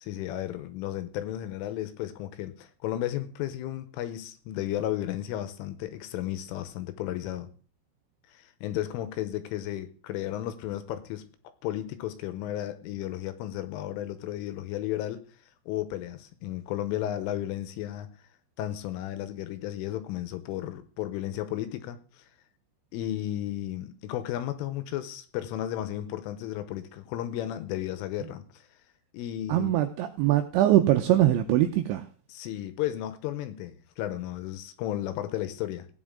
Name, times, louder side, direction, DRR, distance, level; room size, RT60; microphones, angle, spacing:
voice 1, 0.0-7.5 8.3-11.2 11.6-15.2 15.7-18.1 18.6-22.2 22.9-28.4 29.1-29.7 32.3-35.9, left 12 dB, 80° left, 3.3 m, -34 dB
voice 2, 29.5-32.0, right 13 dB, 85° right, 2.7 m, -22 dB
16.5 x 9.5 x 3.7 m
omnidirectional pair, 6.0 m